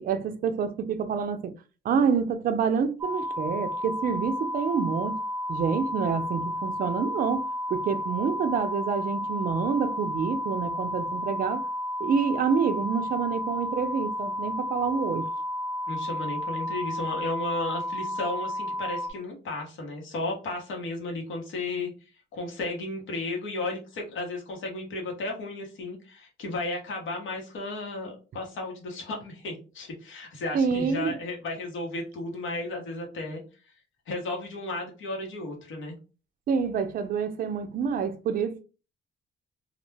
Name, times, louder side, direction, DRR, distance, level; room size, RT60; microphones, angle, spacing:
voice 1, 0.0-1.5 1.8-5.2 5.5-11.7 12.0-15.3 30.5-31.2 36.5-38.6, right 6 dB, 45° right, 0.4 m, -27 dB
sound 1, 3.0-19.1, left 1 dB, 10° right, 0.7 m, -32 dB
voice 2, 15.9-21.9 22.3-33.4 34.1-35.9, left 2 dB, 80° left, 1.0 m, -34 dB
2.3 x 2.1 x 3.2 m
cardioid pair, 110°, 20 cm